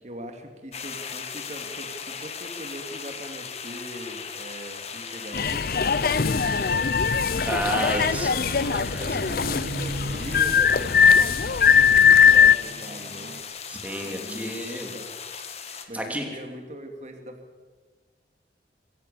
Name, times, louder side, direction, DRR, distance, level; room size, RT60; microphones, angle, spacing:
voice 1, 0.0-7.5 8.7-13.6 14.0-14.6 14.9-15.0 15.9-17.4, equal, 40° right, 5 dB, 2.7 m, -41 dB
sound 1, 0.7-15.8, left 6 dB, 35° left, 1.8 m, -38 dB
sound 2, 5.3-12.6, left 7 dB, 55° left, 0.6 m, -20 dB
voice 2, 7.4-9.1 13.7-14.9 15.7-16.2, right 1 dB, 10° right, 2 dB, 3.1 m, -31 dB
sound 3, 7.4-13.4, right 1 dB, 55° right, 1.0 m, -39 dB
25.5 x 15.0 x 7.1 m, 1.4 s
head